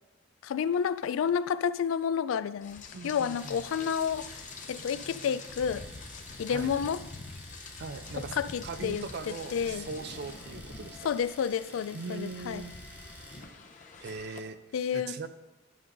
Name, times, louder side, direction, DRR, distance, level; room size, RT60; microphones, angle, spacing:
voice 1, 0.4-5.9 6.4-7.0 8.3-9.9 11.0-12.6 14.7-15.3, left 7 dB, 90° left, 0.3 m, -30 dB
Rain, 2.6-14.4, left 3 dB, 40° left, 0.8 m, -46 dB
voice 2, 2.9-3.6 6.5-6.7 7.8-8.3 8.6-11.1 11.9-12.7 14.0-14.6 14.9-15.3, right 4 dB, 60° right, 0.5 m, -40 dB
Domestic sounds home sounds, 3.4-13.5, equal, 10° right, 1.1 m, -51 dB
10.5 x 3.8 x 5.3 m
head